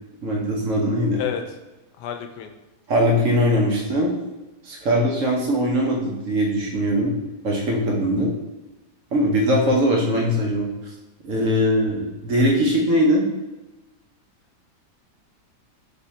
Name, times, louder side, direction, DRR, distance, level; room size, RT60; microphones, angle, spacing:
voice 1, 0.2-1.2 2.9-4.1 4.6-7.1 7.4-8.3 9.1-10.9 11.2-13.2, equal, 55° right, -1 dB, 1.0 m, -21 dB
voice 2, 2.0-2.5, left 9 dB, 85° left, 5 dB, 1.2 m, -29 dB
3.5 x 3.1 x 4.1 m, 1.1 s
omnidirectional pair, 1.8 m